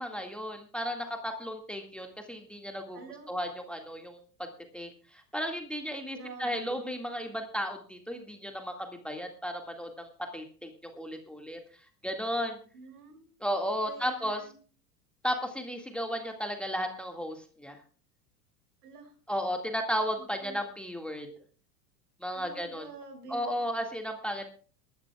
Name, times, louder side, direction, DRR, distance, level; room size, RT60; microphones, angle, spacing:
voice 1, 0.0-3.0 3.3-11.6 12.0-12.6 13.4-14.4 15.2-17.8 19.3-21.3 22.2-22.8 23.3-24.5, equal, ahead, 4 dB, 2.0 m, -34 dB
voice 2, 2.9-3.3 6.1-7.0 12.7-13.3 13.8-14.5 18.8-19.1 20.2-20.6 22.3-23.6, right 4 dB, 70° right, 4 dB, 6.1 m, -47 dB
23.0 x 12.5 x 2.4 m, 0.40 s
hypercardioid pair, 95°, 48 cm